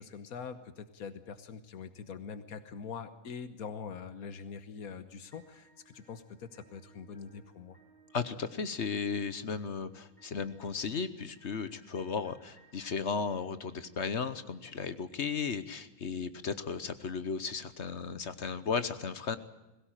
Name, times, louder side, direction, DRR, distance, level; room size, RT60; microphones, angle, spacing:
voice 1, 0.0-7.8, left 6 dB, 90° left, 11 dB, 1.6 m, -44 dB
sound 1, 5.3-15.4, right 3 dB, 35° left, 6.1 m, -64 dB
voice 2, 8.1-19.4, left 5 dB, 55° left, 13 dB, 1.3 m, -35 dB
21.0 x 17.5 x 9.1 m, 1.0 s
omnidirectional pair, 1.5 m